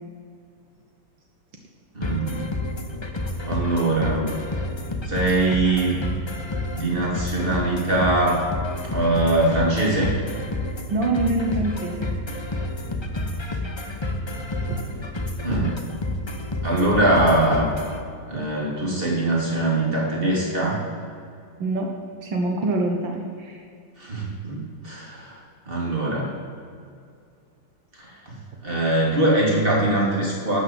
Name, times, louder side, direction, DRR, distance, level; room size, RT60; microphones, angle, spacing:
voice 1, 1.9-2.5 3.4-4.3 5.0-6.0 6.7-8.5 8.9-10.1 15.4-15.8 16.6-17.7 18.3-20.8 24.0-25.4 25.7-26.4 28.0-28.1 28.6-30.6, right 2 dB, 25° right, -3 dB, 3.0 m, -22 dB
sound 1, 2.0-18.0, left 1 dB, 30° left, 0.5 m, -30 dB
voice 2, 10.9-12.1 14.7-14.8 21.6-23.6, right 2 dB, 75° right, 2 dB, 1.9 m, -25 dB
12.0 x 7.7 x 7.8 m, 2.3 s
omnidirectional pair, 2.1 m